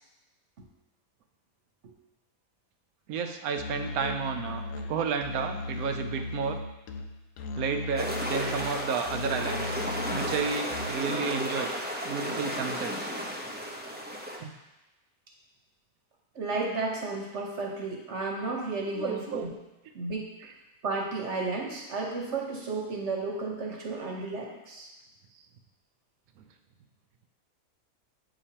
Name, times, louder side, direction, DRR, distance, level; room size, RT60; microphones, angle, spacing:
voice 1, 3.1-4.6 4.9-6.6 7.6-9.8 10.1-11.7 12.0-13.1 14.4-14.6 19.0-19.5 20.4-20.5, right 6 dB, 85° right, 6 dB, 1.1 m, -32 dB
Musical instrument, 3.6-11.2, left 2 dB, 70° left, 0.9 m, -37 dB
sound 1, 8.0-14.4, equal, 10° right, 0.4 m, -33 dB
voice 2, 16.3-19.5 19.9-20.3 20.8-24.9, right 3 dB, 55° right, -1 dB, 1.3 m, -33 dB
8.0 x 5.1 x 2.8 m, 1.0 s
omnidirectional pair, 1.5 m